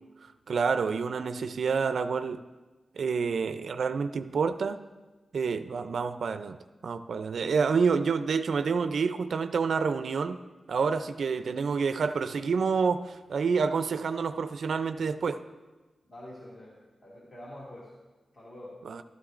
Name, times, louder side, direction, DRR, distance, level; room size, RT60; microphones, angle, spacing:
voice 1, 0.2-2.4 3.0-4.8 5.3-10.4 10.7-15.4 18.9-19.0, right 5 dB, 75° right, 10 dB, 0.4 m, -28 dB
voice 2, 16.0-17.9 18.3-18.8, left 1 dB, 40° left, -6 dB, 2.3 m, -46 dB
14.5 x 12.5 x 2.5 m, 1.2 s
wide cardioid pair, 130°, 0 cm